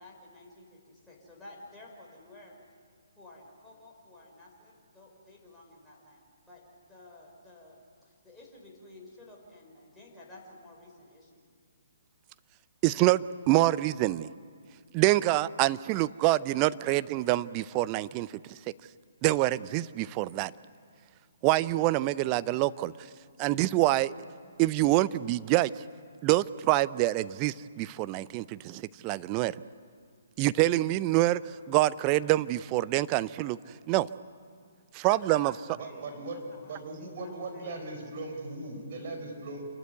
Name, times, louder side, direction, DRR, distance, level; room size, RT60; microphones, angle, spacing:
voice 1, 0.0-2.6 3.2-11.4 35.0-38.0, left 2 dB, 5° left, -4 dB, 5.5 m, -52 dB
voice 2, 12.8-14.3 14.9-18.6 19.2-20.5 21.4-22.9 23.4-24.1 24.6-25.8 26.2-29.6 30.4-33.6 33.9-34.1 34.9-35.5, right 17 dB, 30° right, 17 dB, 0.5 m, -26 dB
voice 3, 35.8-39.7, right 2 dB, 50° right, 4 dB, 5.0 m, -39 dB
28.0 x 12.5 x 9.5 m, 2.1 s
figure-of-eight pair, 135°, 0 cm